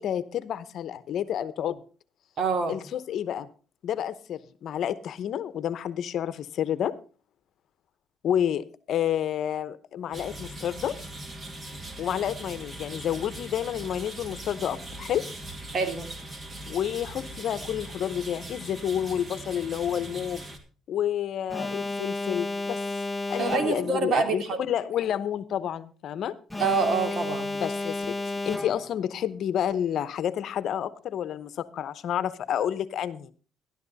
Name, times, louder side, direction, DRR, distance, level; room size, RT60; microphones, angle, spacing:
voice 1, 0.0-1.8 2.7-3.5 3.8-6.9 8.2-11.0 12.0-15.3 16.7-20.4 20.9-22.8 23.3-26.3 27.6-28.2 28.4-33.3, left 10 dB, 60° left, 15 dB, 0.8 m, -30 dB
voice 2, 2.4-2.8 15.7-16.1 23.4-24.6 26.6-27.5, right 4 dB, 50° right, 6 dB, 2.7 m, -26 dB
sound 1, 10.1-20.6, right 1 dB, 25° right, 2.3 m, -40 dB
Alarm, 21.5-24.0 26.5-29.0, left 2 dB, 5° left, 0.8 m, -32 dB
13.0 x 12.0 x 4.0 m, 0.37 s
cardioid pair, 120°, 0 cm